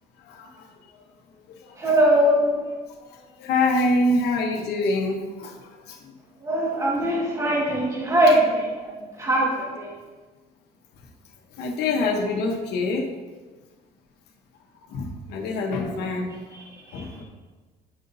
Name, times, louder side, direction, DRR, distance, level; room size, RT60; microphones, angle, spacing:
voice 1, 0.2-0.7 1.6-1.9 3.4-5.6 5.9-6.0 11.6-13.1 14.9-16.3 16.9-17.2, left 2 dB, 75° left, 0 dB, 0.9 m, -25 dB
voice 2, 1.8-2.6 6.4-9.9 15.8-16.0 16.9-17.0, right 1 dB, 20° right, -4 dB, 1.6 m, -21 dB
9.0 x 5.5 x 2.6 m, 1.3 s
cardioid pair, 110°, 17 cm